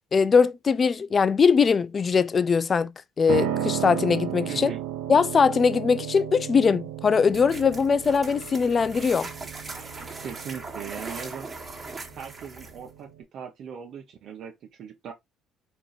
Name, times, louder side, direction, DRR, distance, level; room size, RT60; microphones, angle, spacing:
voice 1, 0.1-2.9 3.2-4.7 5.1-9.3, left 5 dB, 30° left, 0.4 m, -21 dB
Piano, 3.3-13.2, right 10 dB, 90° right, 0.6 m, -34 dB
voice 2, 4.5-4.8 10.2-11.5 12.2-15.1, right 7 dB, 55° right, 0.8 m, -39 dB
sound 1, 7.3-12.9, right 3 dB, 20° right, 1.5 m, -40 dB
4.4 x 2.6 x 3.9 m
cardioid pair, 120°, 0 cm